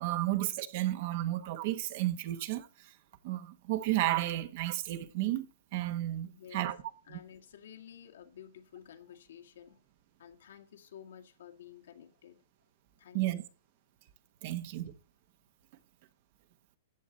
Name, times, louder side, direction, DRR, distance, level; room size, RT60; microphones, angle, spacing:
voice 1, 0.0-2.9 3.2-5.5 5.7-6.8 7.1-7.2 13.1-13.4 14.4-14.9, right 15 dB, 40° right, 1.1 m, -32 dB
voice 2, 6.3-6.7 7.1-9.8 10.2-12.4 13.0-13.4, left 9 dB, 75° left, 2.0 m, -52 dB
14.0 x 8.4 x 4.1 m
hypercardioid pair, 165°, 0 cm